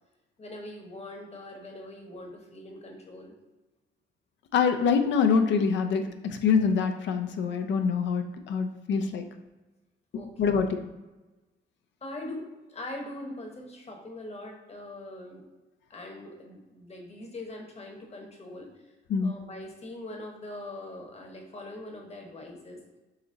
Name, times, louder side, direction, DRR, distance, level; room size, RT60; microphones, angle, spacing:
voice 1, 0.4-3.3 10.1-10.5 12.0-15.4 15.9-18.7 19.2-22.8, left 1 dB, 35° left, 1 dB, 1.0 m, -42 dB
voice 2, 4.5-9.2 10.1-10.7 19.1-19.3, left 6 dB, 75° left, 6 dB, 0.5 m, -25 dB
4.0 x 2.9 x 3.7 m, 1.1 s
cardioid pair, 85°, 19 cm